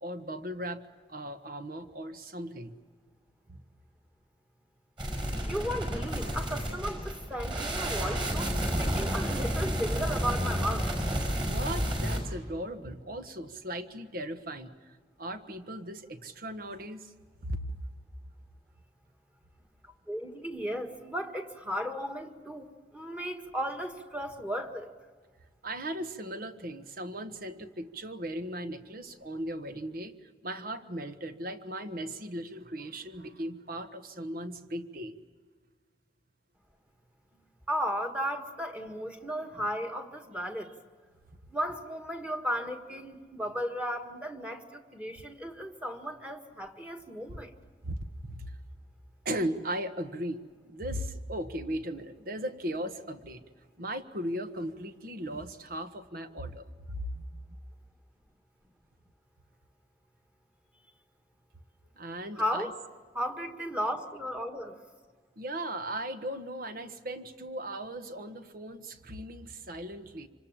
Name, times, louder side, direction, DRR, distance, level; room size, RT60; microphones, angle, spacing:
voice 1, 0.0-0.8 1.1-2.7 3.5-3.6 11.4-14.9 15.2-17.1 17.4-17.7 23.3-23.4 25.6-35.2 47.8-47.9 48.2-48.6 49.2-53.4 53.8-56.7 56.9-57.2 62.0-62.7 65.4-70.3, right 1 dB, 55° right, 9 dB, 1.4 m, -37 dB
sound 1, 5.0-12.2, equal, 25° right, 5.4 m, -31 dB
voice 2, 5.5-11.0 20.1-24.9 37.7-40.7 41.5-47.5 62.3-62.7 63.1-64.8, equal, 10° right, 4 dB, 1.7 m, -35 dB
27.0 x 25.5 x 7.4 m, 1.5 s
head